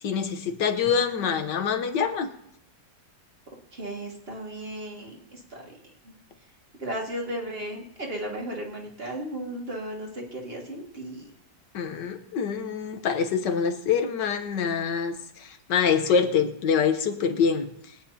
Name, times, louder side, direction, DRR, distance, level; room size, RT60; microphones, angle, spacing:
voice 1, 0.0-2.3 11.7-17.7, left 6 dB, 75° left, 7 dB, 1.6 m, -25 dB
voice 2, 3.7-5.7 6.0-6.1 6.8-11.3, right 1 dB, 35° right, -1 dB, 2.3 m, -35 dB
22.5 x 9.5 x 2.8 m, 0.72 s
omnidirectional pair, 1.9 m